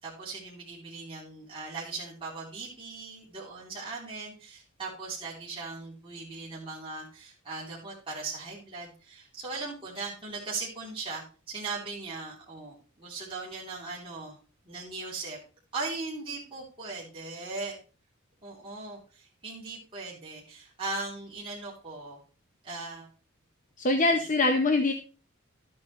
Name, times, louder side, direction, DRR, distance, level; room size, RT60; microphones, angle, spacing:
voice 1, 0.0-14.4 14.6-15.4 15.7-17.8 18.4-22.2 22.6-23.1 24.2-24.3, right 3 dB, 25° right, -6 dB, 3.1 m, -39 dB
voice 2, 23.8-24.9, left 2 dB, 40° left, 6 dB, 0.7 m, -23 dB
12.0 x 8.6 x 3.1 m, 0.35 s
head